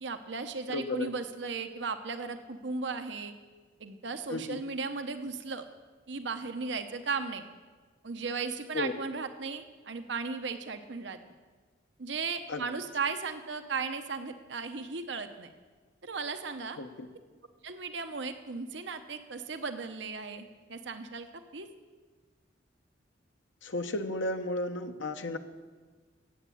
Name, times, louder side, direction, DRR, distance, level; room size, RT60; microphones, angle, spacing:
voice 1, 0.0-3.3 3.8-5.6 6.1-7.4 8.0-11.2 12.0-15.5 16.0-16.8 17.6-21.7, right 4 dB, 65° right, 8 dB, 0.9 m, -36 dB
voice 2, 0.7-1.1 4.3-4.6 8.7-8.9 12.5-12.6 16.8-17.1 23.6-25.4, left 2 dB, 80° left, 7 dB, 1.1 m, -33 dB
15.0 x 8.4 x 8.4 m, 1.4 s
head